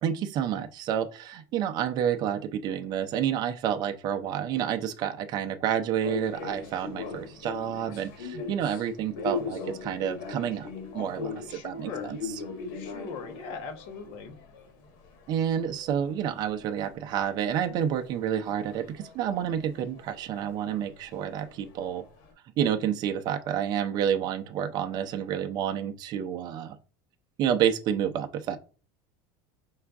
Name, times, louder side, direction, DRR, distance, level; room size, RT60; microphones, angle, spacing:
voice 1, 0.0-12.4 15.3-22.0 22.6-26.8 27.4-28.6, right 9 dB, 40° right, 0.6 m, -29 dB
sound 1, 6.0-16.9 17.1-22.3, left 4 dB, 80° left, 1.4 m, -40 dB
voice 2, 11.5-12.1 12.7-14.3, left 5 dB, 60° left, 1.2 m, -40 dB
5.6 x 2.4 x 3.5 m
supercardioid pair, 140°, 11 cm